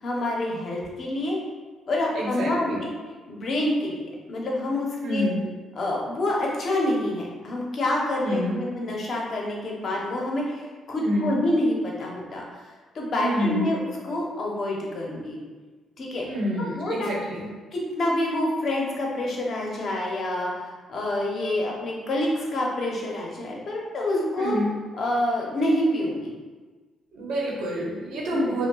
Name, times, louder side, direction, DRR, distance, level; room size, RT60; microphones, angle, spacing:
voice 1, 0.0-1.4 1.9-2.9 3.3-5.3 5.7-12.4 12.9-13.8 14.0-15.4 16.0-16.2 16.6-17.1 17.7-24.6 25.0-26.3 28.3-28.6, left 1 dB, 55° left, -2 dB, 0.8 m, -27 dB
voice 2, 2.2-2.8 5.0-5.5 8.2-8.6 11.0-11.3 13.2-13.7 16.2-17.5 24.4-24.7 27.1-28.7, equal, 80° right, -3 dB, 1.0 m, -27 dB
5.0 x 2.2 x 2.3 m, 1.4 s
cardioid pair, 90°, 0 cm